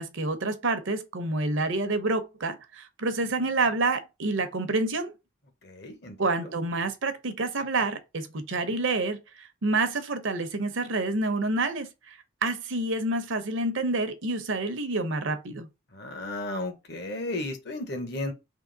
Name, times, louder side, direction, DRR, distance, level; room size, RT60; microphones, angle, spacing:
voice 1, 0.0-5.1 6.2-15.7, right 2 dB, 65° right, 0.7 m, -28 dB
voice 2, 5.6-6.2 6.4-6.5 15.9-18.3, left 2 dB, 50° left, 0.9 m, -34 dB
3.7 x 2.9 x 3.8 m
head